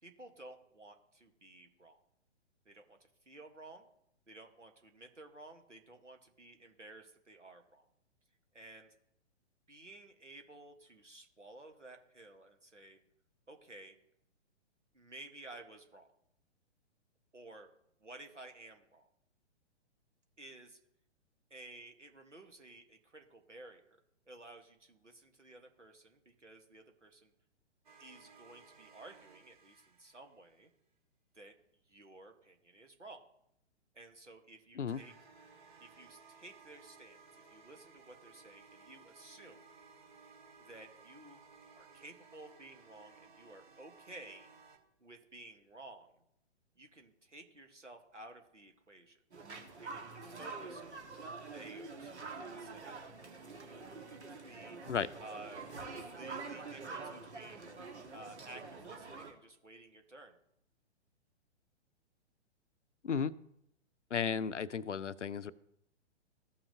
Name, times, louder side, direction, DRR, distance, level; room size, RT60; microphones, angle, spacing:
voice 1, 0.0-2.0 2.6-3.0 3.2-3.9 4.3-7.8 8.5-9.0 9.7-13.0 13.5-14.0 14.9-16.1 17.3-17.7 18.0-19.1 20.4-20.8 21.5-24.0 24.3-27.3 28.0-30.7 31.3-31.6 31.9-33.2 33.9-35.1 35.8-39.6 40.6-41.4 41.7-44.5 45.0-46.2 46.8-49.2 49.8-52.2 52.6-52.9 54.4-54.8 55.2-55.7 56.1-57.8 58.1-60.4, right 2 dB, 90° right, 5 dB, 1.4 m, -54 dB
sound 1, 27.8-30.6 34.9-44.8, right 5 dB, 45° right, 1.4 m, -59 dB
sound 2, 49.3-59.3, right 4 dB, 70° right, 1.5 m, -46 dB
voice 2, 64.1-65.5, left 6 dB, 80° left, 16 dB, 0.6 m, -34 dB
15.0 x 5.8 x 2.8 m, 0.76 s
figure-of-eight pair, 120°, 35 cm